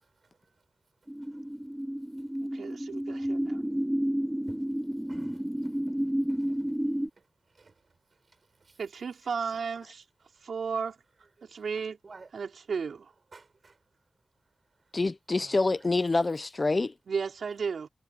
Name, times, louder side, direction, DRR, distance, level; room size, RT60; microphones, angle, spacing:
sound 1, 1.1-7.1, equal, 5° right, 1.0 m, -31 dB
voice 1, 2.4-3.6 8.8-10.0 10.4-11.0 11.4-12.0 12.3-13.1 17.1-17.9, right 5 dB, 80° right, 4.9 m, -34 dB
voice 2, 5.1-6.0 6.3-6.6 7.5-7.7 8.6-8.8 12.0-12.3 13.3-13.8 15.4-15.6, right 4 dB, 45° right, 5.5 m, -52 dB
voice 3, 14.9-16.9, left 3 dB, 30° left, 0.7 m, -26 dB
wide cardioid pair, 150°, 0 cm